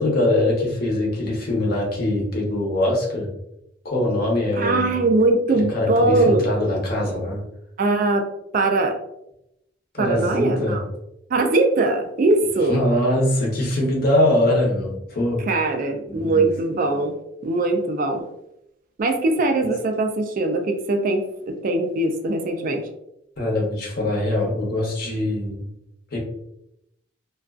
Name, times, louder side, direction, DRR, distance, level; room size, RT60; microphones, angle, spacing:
voice 1, 0.0-3.3 3.8-5.0 5.5-7.4 9.9-10.8 12.7-15.4 16.1-16.5 19.6-19.7 23.4-25.7 26.1-26.2, left 1 dB, 50° left, -2 dB, 0.8 m, -22 dB
voice 2, 4.6-6.4 7.8-8.3 8.5-9.0 10.0-10.8 11.3-12.8 15.5-17.1 17.4-18.2 19.0-22.9, right 2 dB, 45° right, 4 dB, 0.3 m, -21 dB
2.4 x 2.3 x 2.3 m, 0.81 s
head